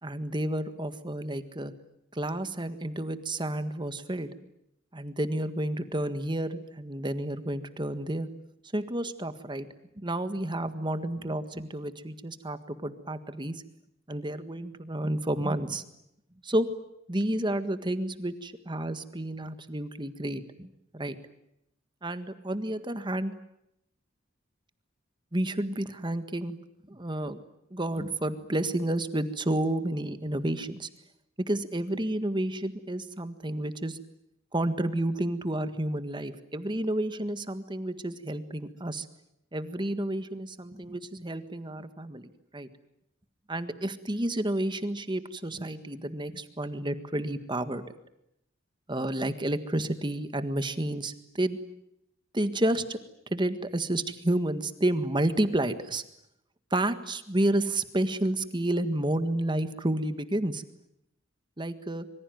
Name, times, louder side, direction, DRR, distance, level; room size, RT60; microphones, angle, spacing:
voice 1, 0.0-1.7 2.1-4.3 4.9-8.3 8.7-9.7 10.0-13.6 14.1-15.8 16.4-16.7 17.1-20.7 20.9-21.1 22.0-23.3 25.3-26.6 26.9-27.4 27.7-30.9 31.4-34.0 34.5-39.1 39.5-42.7 43.5-47.8 48.9-51.6 52.3-53.0 53.3-56.0 56.7-60.6 61.6-62.1, right 1 dB, 25° right, 10 dB, 1.7 m, -30 dB
26.0 x 24.0 x 9.3 m, 0.81 s
head